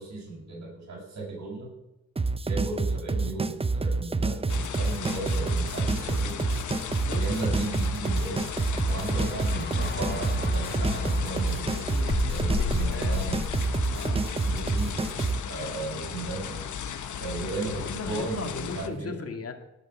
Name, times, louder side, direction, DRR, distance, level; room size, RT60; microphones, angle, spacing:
voice 1, 0.0-1.7 2.4-6.4 7.2-8.5 8.9-13.4 14.4-15.1 15.5-16.6 17.2-19.2, right 3 dB, 65° right, -4 dB, 6.7 m, -35 dB
sound 1, 2.2-15.4, right 3 dB, 20° right, 0.7 m, -28 dB
sound 2, 4.5-18.9, left 7 dB, 80° left, 1.1 m, -34 dB
voice 2, 6.8-7.3 11.8-13.4 13.9-14.3 17.6-19.5, left 4 dB, 55° left, 5 dB, 2.1 m, -38 dB
sound 3, 8.3-14.4, left 5 dB, 35° left, 1.1 m, -41 dB
18.0 x 7.1 x 7.2 m, 0.93 s
cardioid pair, 95°, 29 cm